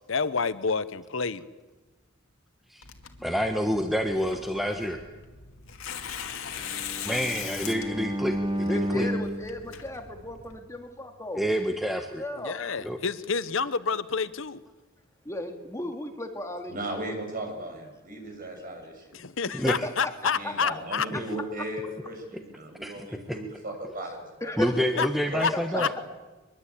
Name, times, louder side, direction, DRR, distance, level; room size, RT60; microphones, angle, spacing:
voice 1, 0.1-1.4 12.4-14.6 19.1-21.1 25.0-25.1 25.4-25.5 25.8-26.0, left 5 dB, 70° left, 14 dB, 0.9 m, -28 dB
Tearing, 2.8-10.6, left 8 dB, 90° left, 2.3 m, -40 dB
voice 2, 3.2-5.0 7.0-9.1 11.3-12.2 12.8-13.0 19.5-19.8 21.1-21.2 22.8-23.4 24.6-25.9, equal, ahead, 4 dB, 1.3 m, -28 dB
Bowed string instrument, 6.6-10.7, equal, 25° right, 1.4 m, -33 dB
voice 3, 8.7-11.4 12.2-12.6 15.2-17.1 19.8-19.9 20.2-20.5 24.4-24.7, left 1 dB, 15° left, 4 dB, 2.3 m, -35 dB
voice 4, 16.7-19.0 19.4-19.7 20.3-24.5 25.3-25.4 25.7-25.8, right 1 dB, 45° right, 3 dB, 6.9 m, -36 dB
23.5 x 22.0 x 8.6 m, 1.2 s
head